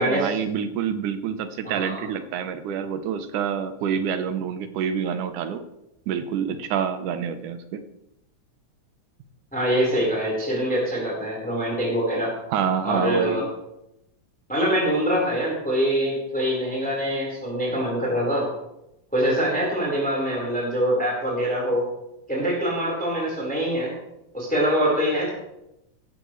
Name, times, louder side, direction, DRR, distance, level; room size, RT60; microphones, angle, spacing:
voice 1, 0.0-5.6 6.1-7.8 12.5-13.5, right 7 dB, 85° right, 9 dB, 2.5 m, -27 dB
voice 2, 1.6-2.0 9.5-12.3 12.8-13.4 14.5-18.5 19.1-21.9 22.3-23.9 24.3-25.3, equal, 5° left, -4 dB, 4.2 m, -24 dB
16.0 x 13.5 x 3.2 m, 0.86 s
omnidirectional pair, 3.5 m